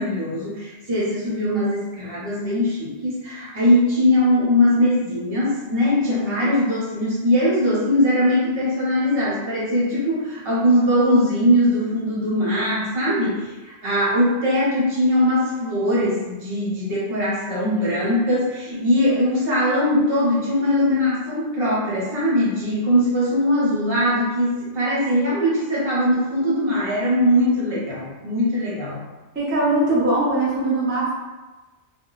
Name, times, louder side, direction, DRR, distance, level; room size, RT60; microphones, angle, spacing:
voice 1, 0.0-29.0, left 1 dB, 60° right, -7 dB, 1.0 m, -21 dB
voice 2, 29.3-31.1, right 2 dB, 15° right, -7 dB, 0.6 m, -21 dB
2.2 x 2.1 x 3.8 m, 1.2 s
omnidirectional pair, 1.1 m